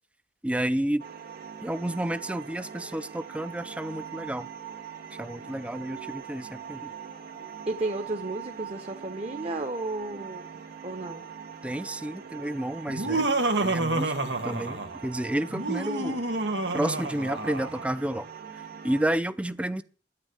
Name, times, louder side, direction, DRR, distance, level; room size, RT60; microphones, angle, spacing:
voice 1, 0.4-1.0 1.6-4.5 5.2-6.9 11.6-13.3 13.6-14.1 14.4-16.2 16.7-18.3 18.8-19.8, right 1 dB, 5° right, 0.6 m, -30 dB
sound 1, 1.0-19.1, right 7 dB, 60° right, 2.8 m, -42 dB
voice 2, 7.7-10.4 10.8-11.2, right 2 dB, 35° right, 1.2 m, -33 dB
Laughter, 12.9-15.0 15.5-17.8, right 2 dB, 90° right, 1.8 m, -28 dB
9.9 x 9.7 x 9.7 m
head